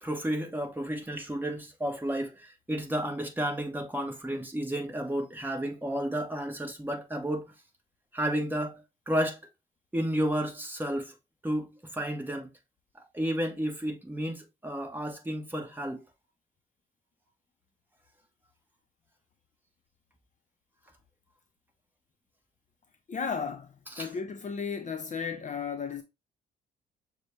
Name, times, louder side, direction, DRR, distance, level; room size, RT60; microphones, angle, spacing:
voice 1, 0.0-7.5 8.1-9.4 9.9-11.1 11.4-12.5 13.1-16.0 24.0-24.1, right 1 dB, 10° right, 1.2 m, -32 dB
voice 2, 23.1-26.0, left 6 dB, 40° left, 0.7 m, -34 dB
6.6 x 2.3 x 3.2 m
cardioid pair, 90°, 20 cm